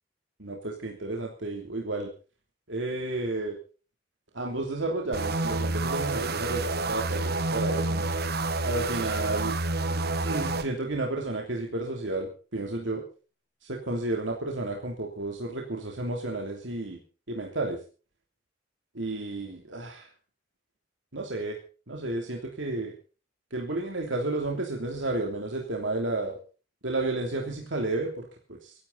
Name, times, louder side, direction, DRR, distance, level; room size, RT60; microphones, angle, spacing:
voice 1, 0.4-2.1 2.7-3.6 4.3-8.1 8.6-9.6 9.9-13.0 13.6-17.0 17.3-17.8 18.9-20.1 21.1-21.6 21.9-22.9 23.5-26.4 26.8-28.7, right 2 dB, 70° right, 0 dB, 3.1 m, -32 dB
sound 1, 5.1-10.7, right 2 dB, 55° right, 1.5 m, -29 dB
24.0 x 12.0 x 4.1 m, 0.37 s
head